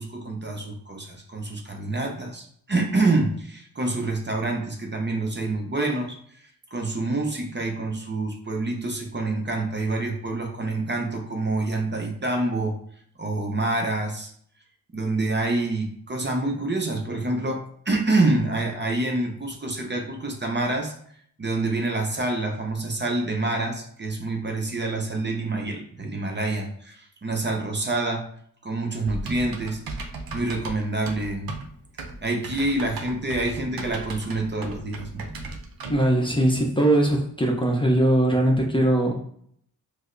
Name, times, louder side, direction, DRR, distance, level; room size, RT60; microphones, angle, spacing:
voice 1, 0.0-12.7 13.2-14.3 14.9-20.9 21.4-28.2 28.6-29.8 30.3-31.5 32.2-35.3, right 2 dB, 30° right, 2 dB, 0.6 m, -27 dB
Typing, 29.1-36.1, right 3 dB, 80° right, 0.6 m, -37 dB
voice 2, 35.9-39.3, right 1 dB, 15° left, 0 dB, 0.6 m, -21 dB
4.7 x 2.0 x 2.6 m, 0.63 s
wide cardioid pair, 85°, 36 cm